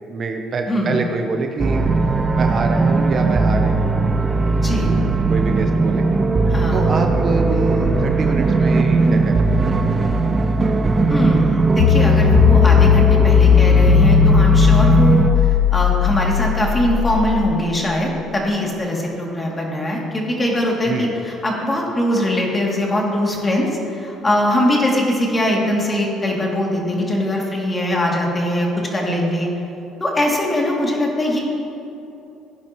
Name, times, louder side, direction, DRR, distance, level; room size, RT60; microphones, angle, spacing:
voice 1, 0.1-1.8 2.3-4.0 5.3-6.1 6.7-9.7 20.9-21.2, right 4 dB, 45° right, 4 dB, 1.0 m, -25 dB
sound 1, 1.6-15.3, right 3 dB, 25° right, 0.6 m, -18 dB
voice 2, 4.6-4.9 6.5-7.0 11.1-29.5 30.0-31.4, left 1 dB, 20° left, -2 dB, 2.8 m, -21 dB
sound 2, 11.8-18.0, left 10 dB, 85° left, 0.4 m, -16 dB
17.0 x 10.5 x 3.1 m, 2.8 s
cardioid pair, 90°, 0 cm